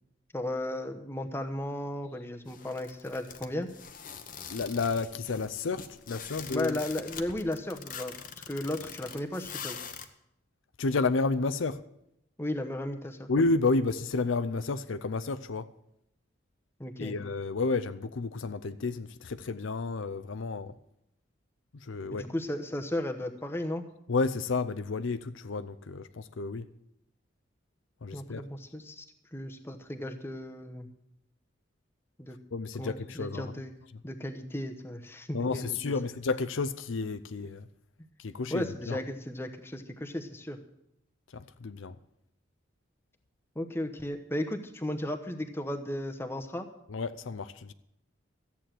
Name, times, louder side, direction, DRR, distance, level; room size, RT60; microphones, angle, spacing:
voice 1, 0.3-3.7 6.5-8.2 8.5-9.8 12.4-13.3 16.8-17.1 22.1-23.8 28.1-29.0 29.3-30.9 32.2-32.4 32.8-33.7 34.0-35.8 38.5-40.6 43.5-46.7, left 1 dB, 10° left, 1.0 m, -35 dB
sound 1, 2.5-10.1, left 7 dB, 45° left, 0.9 m, -44 dB
voice 2, 4.5-6.8 10.8-11.8 13.3-15.7 17.0-20.7 21.8-22.3 24.1-26.7 28.0-28.4 32.5-33.5 35.3-37.7 38.2-39.0 41.3-42.0 46.9-47.7, left 3 dB, 80° left, 0.6 m, -31 dB
14.0 x 8.5 x 7.6 m
head